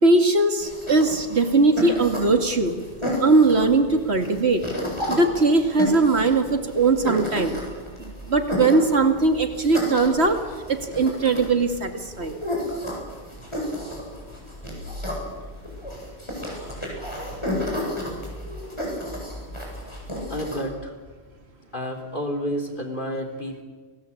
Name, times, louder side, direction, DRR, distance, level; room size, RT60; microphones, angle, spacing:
voice 1, 0.0-2.8 3.2-4.6 5.1-7.5 8.0-10.4 10.7-12.4, right 3 dB, 75° right, 7 dB, 2.5 m, -20 dB
sound 1, 0.6-20.6, left 1 dB, 25° left, 8.1 m, -32 dB
voice 2, 20.3-20.9 21.7-23.6, equal, 50° left, 4 dB, 3.8 m, -30 dB
30.0 x 21.0 x 8.6 m, 1.4 s
omnidirectional pair, 1.1 m